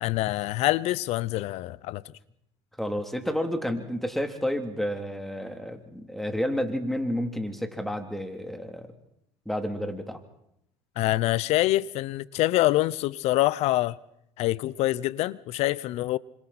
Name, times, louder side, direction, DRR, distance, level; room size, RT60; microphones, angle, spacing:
voice 1, 0.0-2.0 11.0-14.0 14.4-16.2, left 17 dB, 65° left, 0.8 m, -25 dB
voice 2, 2.8-8.9 9.4-10.2, equal, ahead, 3.2 m, -30 dB
28.0 x 26.0 x 4.3 m
supercardioid pair, 85°, 12 cm